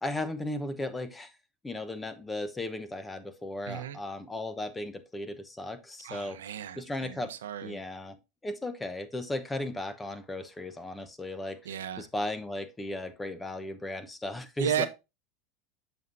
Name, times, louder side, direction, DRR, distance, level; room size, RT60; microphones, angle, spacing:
voice 1, 0.0-1.3 1.6-6.4 6.8-7.3 7.6-11.6 12.0-14.9, left 1 dB, 15° left, 1.0 m, -36 dB
voice 2, 3.6-4.0 6.0-7.8 11.6-12.1 14.6-14.9, right 9 dB, 90° right, 0.8 m, -34 dB
6.9 x 6.3 x 2.6 m
supercardioid pair, 105°, 0 cm